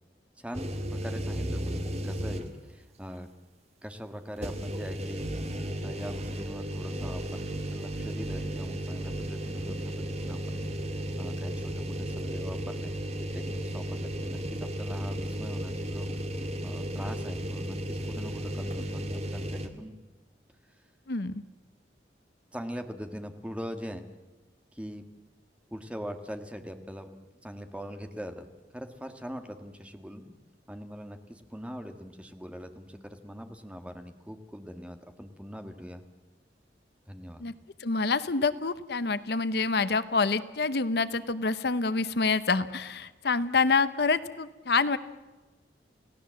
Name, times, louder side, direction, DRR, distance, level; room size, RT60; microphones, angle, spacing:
voice 1, 0.4-3.3 3.8-5.3 5.8-10.6 11.2-12.9 13.3-16.1 16.6-20.0 22.5-24.1 24.7-25.0 25.7-27.1 27.4-30.4 30.7-36.0 37.1-37.4, equal, 5° right, 7 dB, 1.6 m, -41 dB
sound 1, 0.5-2.7 3.1-3.2 4.4-19.7, equal, 35° right, 2.0 m, -34 dB
voice 2, 21.1-21.4 37.4-37.5 37.8-45.0, left 4 dB, 65° left, 14 dB, 0.8 m, -27 dB
29.0 x 17.5 x 7.6 m, 1.2 s
head